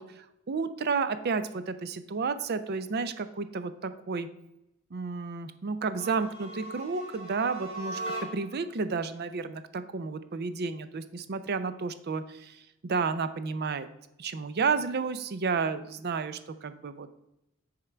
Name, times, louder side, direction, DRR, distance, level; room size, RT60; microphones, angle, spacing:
voice 1, 0.0-4.3 4.9-8.0 8.3-13.9 14.2-17.2, right 4 dB, 50° right, 12 dB, 0.5 m, -31 dB
sound 1, 5.9-8.6, right 1 dB, 30° right, 2.1 m, -39 dB
9.9 x 3.7 x 4.4 m, 0.88 s
head